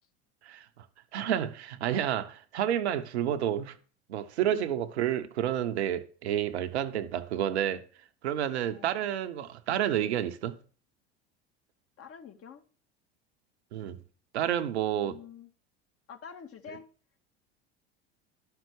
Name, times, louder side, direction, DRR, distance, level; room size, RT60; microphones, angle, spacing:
voice 1, 0.4-0.8 1.1-3.8 4.1-7.8 8.2-10.6 13.7-14.0 14.3-15.2, right 10 dB, 85° right, 1.1 m, -30 dB
voice 2, 4.5-4.8 8.7-9.1 12.0-12.6 15.0-15.5 16.1-16.9, left 7 dB, 45° left, 2.1 m, -47 dB
12.0 x 5.9 x 6.4 m
hypercardioid pair, 80°, 32 cm